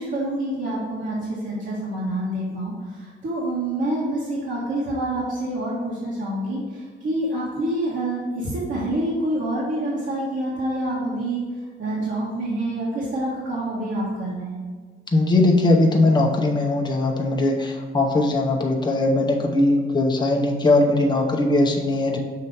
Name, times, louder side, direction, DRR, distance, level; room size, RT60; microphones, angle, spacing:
voice 1, 0.0-11.4 11.8-14.6, right 1 dB, 60° right, -7 dB, 1.7 m, -27 dB
voice 2, 15.1-22.2, left 2 dB, 20° left, 1 dB, 0.8 m, -20 dB
6.5 x 3.0 x 5.6 m, 1.5 s
cardioid pair, 105°, 21 cm